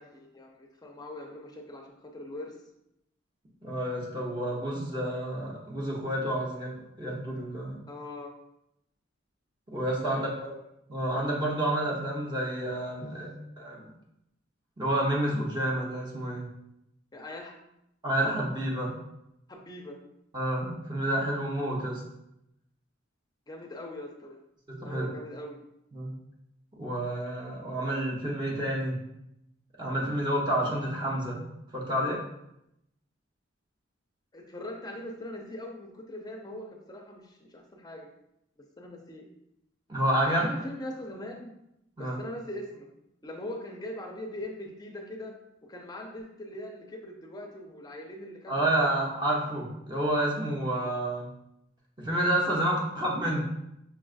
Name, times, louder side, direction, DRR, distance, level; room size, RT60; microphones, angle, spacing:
voice 1, 0.0-2.6 7.9-8.3 9.9-10.6 13.0-13.4 17.1-17.5 19.5-20.0 23.5-24.4 24.8-25.6 34.3-38.1 38.8-39.3 40.2-41.6 42.0-42.9 43.2-45.4 45.7-49.1, left 1 dB, 20° left, 1 dB, 0.5 m, -41 dB
voice 2, 3.6-6.7 7.0-7.8 9.7-10.3 10.9-13.3 13.6-13.8 14.8-16.5 18.0-19.0 20.3-22.0 24.7-25.1 25.9-26.1 26.8-29.0 29.8-31.4 31.7-32.2 39.9-40.5 42.0-42.2 48.5-51.3 52.0-53.4, right 1 dB, 25° right, -4 dB, 0.8 m, -29 dB
5.6 x 2.4 x 2.4 m, 0.82 s
head